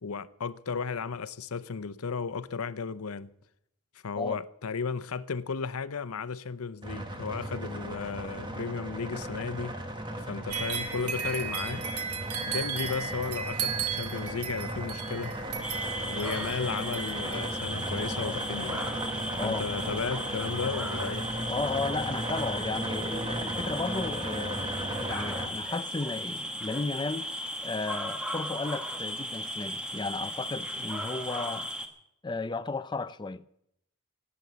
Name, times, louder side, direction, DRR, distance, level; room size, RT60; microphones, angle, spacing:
voice 1, 0.0-3.3 4.0-9.8 10.3-11.9 12.5-15.4 16.1-18.8 19.4-21.3, left 5 dB, 85° left, 0.7 m, -34 dB
sound 1, 6.8-25.5, right 1 dB, 20° right, 1.5 m, -36 dB
sound 2, 10.5-17.5, right 6 dB, 90° right, 1.8 m, -35 dB
sound 3, 15.6-31.9, equal, 5° right, 1.3 m, -36 dB
voice 2, 19.3-19.6 21.5-27.3 27.6-31.7 32.2-33.4, left 3 dB, 20° left, 0.5 m, -34 dB
17.0 x 8.6 x 8.1 m
head